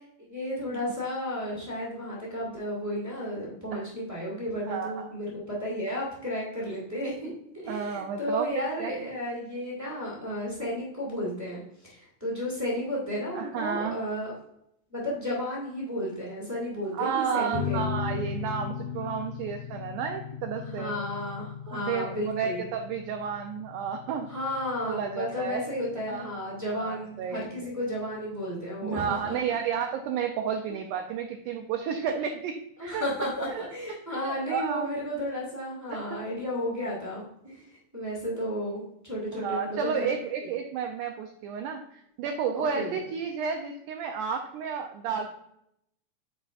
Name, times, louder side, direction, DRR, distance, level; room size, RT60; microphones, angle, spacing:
voice 1, 0.3-7.3 7.6-14.3 14.9-17.8 20.6-22.6 24.3-29.3 30.7-30.8 32.8-37.6 37.9-40.1 42.6-43.0, equal, 10° right, -5 dB, 1.1 m, -33 dB
voice 2, 4.7-5.1 7.7-9.1 13.3-14.0 16.9-20.9 21.7-24.3 24.8-25.6 26.1-27.7 28.8-32.6 32.8-33.1 33.5-33.7 34.1-34.9 35.9-36.2 39.3-45.3, right 7 dB, 80° right, 3 dB, 1.9 m, -32 dB
sound 1, 17.5-28.5, left 7 dB, 75° left, 1.8 m, -38 dB
9.8 x 4.7 x 2.4 m, 0.74 s
omnidirectional pair, 4.1 m